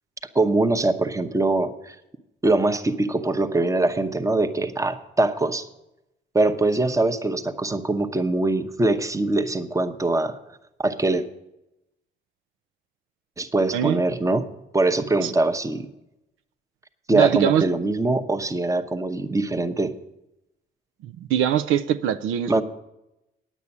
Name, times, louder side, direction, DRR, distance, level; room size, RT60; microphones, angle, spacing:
voice 1, 0.3-2.0 2.4-5.7 6.3-10.4 10.8-11.3 13.4-15.9 17.1-19.9 22.5-22.6, right 2 dB, 15° right, 8 dB, 0.9 m, -23 dB
voice 2, 17.1-17.6 21.0-22.6, right 10 dB, 90° right, 11 dB, 0.5 m, -22 dB
9.7 x 8.2 x 7.2 m, 0.89 s
cardioid pair, 90°, 20 cm